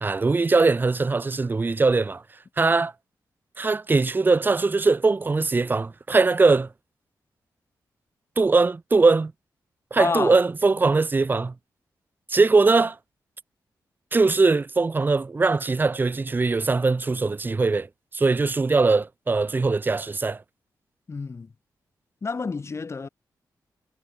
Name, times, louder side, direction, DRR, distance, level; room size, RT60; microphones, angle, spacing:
voice 1, 0.0-2.2 2.6-2.9 3.6-6.7 8.4-9.3 9.9-11.5 12.3-13.0 14.1-17.9 18.1-20.4, right 3 dB, 25° right, 0.9 m, -21 dB
voice 2, 10.0-10.4 21.1-21.5 22.2-23.1, left 4 dB, 40° left, 4.2 m, -29 dB
cardioid pair, 100°, 7 cm